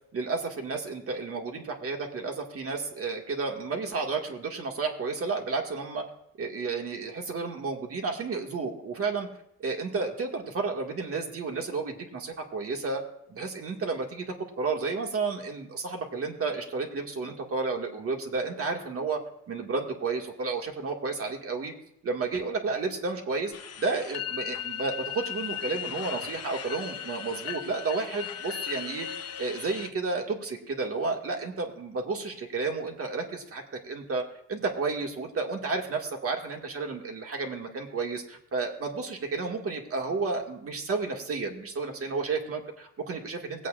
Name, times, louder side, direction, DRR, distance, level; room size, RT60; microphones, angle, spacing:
voice 1, 0.1-6.0 6.4-9.3 9.6-13.0 13.3-19.2 19.5-21.7 22.0-23.5 23.8-29.1 29.4-34.2 34.5-43.7, right 4 dB, 50° right, 2 dB, 2.0 m, -32 dB
sound 1, 23.5-29.9, left 10 dB, 55° left, 0.9 m, -37 dB
19.0 x 8.2 x 2.5 m, 0.76 s
cardioid pair, 90°, 30 cm